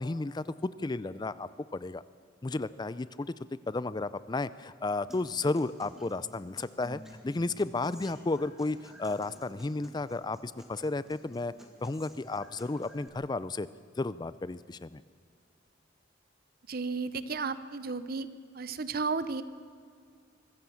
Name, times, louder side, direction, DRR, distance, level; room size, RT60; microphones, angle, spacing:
voice 1, 0.0-2.0 2.4-3.3 3.7-11.5 11.8-13.7 14.0-15.0, left 2 dB, 25° left, 16 dB, 0.4 m, -33 dB
Human voice / Acoustic guitar, 5.1-13.1, equal, ahead, 2.3 m, -53 dB
voice 2, 16.7-18.3 18.5-19.4, right 4 dB, 50° right, 14 dB, 0.9 m, -33 dB
24.0 x 15.0 x 7.2 m, 2.2 s
head